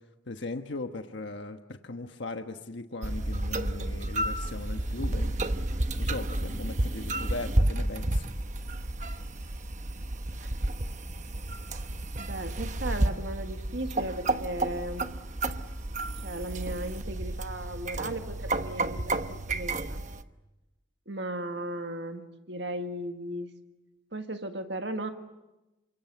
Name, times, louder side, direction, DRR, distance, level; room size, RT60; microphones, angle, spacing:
voice 1, 0.3-5.4 5.9-8.3, left 2 dB, 65° left, 6 dB, 1.3 m, -38 dB
sound 1, 3.0-20.2, right 1 dB, 40° right, 1.1 m, -31 dB
voice 2, 12.2-15.1 16.2-20.0 21.0-23.5 24.1-25.1, right 1 dB, 60° right, 6 dB, 1.8 m, -36 dB
29.0 x 25.5 x 8.0 m, 1.0 s
head